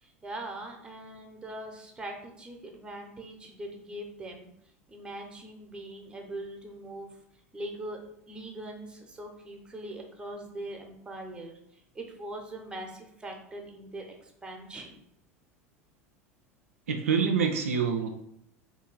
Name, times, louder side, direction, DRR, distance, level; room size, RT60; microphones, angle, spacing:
voice 1, 0.0-4.5 4.9-7.1 7.5-8.0 8.3-15.0, right 1 dB, 10° right, 3 dB, 0.6 m, -41 dB
voice 2, 16.9-18.1, right 6 dB, 65° right, 5 dB, 0.3 m, -26 dB
3.0 x 2.4 x 3.7 m, 0.71 s
figure-of-eight pair, 80°, 8 cm